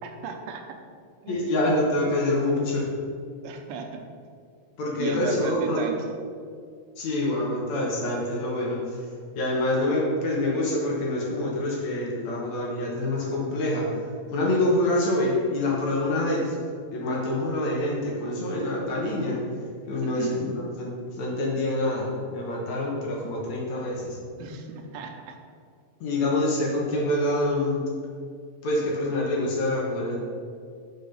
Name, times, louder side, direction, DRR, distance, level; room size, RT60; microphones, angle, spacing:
voice 1, 0.0-0.8 1.2-1.5 3.4-4.0 5.0-6.0 20.0-20.4 24.4-25.4, right 6 dB, 85° right, 4 dB, 2.6 m, -35 dB
voice 2, 1.3-2.9 4.8-5.8 7.0-9.1 9.4-13.9 14.3-16.6 16.9-19.5 19.8-24.2 26.0-27.8 28.6-30.2, left 1 dB, 60° left, -3 dB, 2.2 m, -26 dB
7.1 x 5.7 x 5.7 m, 2.2 s
omnidirectional pair, 4.0 m